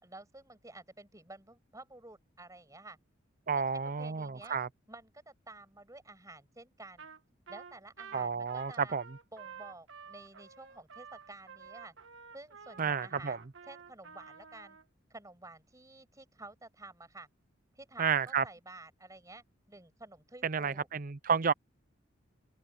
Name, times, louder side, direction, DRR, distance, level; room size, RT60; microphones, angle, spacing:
voice 1, 0.0-3.0 3.5-4.6 4.9-7.1 7.5-8.9 9.3-11.9 12.3-14.8 15.1-17.3 17.7-20.9, right 2 dB, 15° right, 6.5 m, -51 dB
voice 2, 3.5-4.7 8.1-9.0 12.8-13.4 18.0-18.4 20.4-21.5, right 6 dB, 45° right, 0.6 m, -31 dB
Trumpet, 7.0-7.2 7.5-14.8, right 6 dB, 85° right, 1.5 m, -51 dB
head